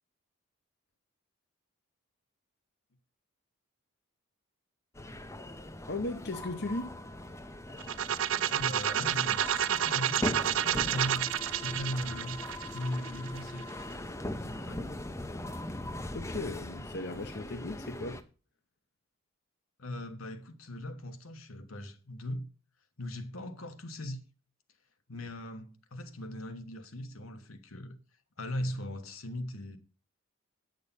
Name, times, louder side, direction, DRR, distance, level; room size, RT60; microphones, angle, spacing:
sound 1, 4.9-18.2, left 1 dB, 15° left, 0.6 m, -40 dB
voice 1, 5.9-7.0 16.1-18.2, left 2 dB, 50° left, 0.8 m, -37 dB
sound 2, 7.8-13.6, right 10 dB, 70° right, 0.5 m, -30 dB
voice 2, 8.5-12.4 12.7-13.7 14.3-15.0 19.8-22.5 23.0-24.2 25.1-27.9 28.4-29.8, left 1 dB, 80° left, 1.3 m, -39 dB
9.4 x 6.6 x 5.4 m
head